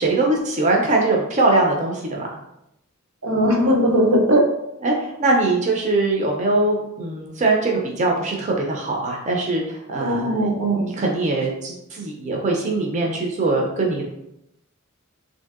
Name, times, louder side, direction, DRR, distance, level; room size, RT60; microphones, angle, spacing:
voice 1, 0.0-2.3 4.8-14.0, right 2 dB, 35° right, -1 dB, 0.4 m, -22 dB
voice 2, 3.2-4.4 10.0-10.8, equal, 80° right, 0 dB, 0.6 m, -18 dB
3.3 x 2.6 x 2.4 m, 0.84 s
head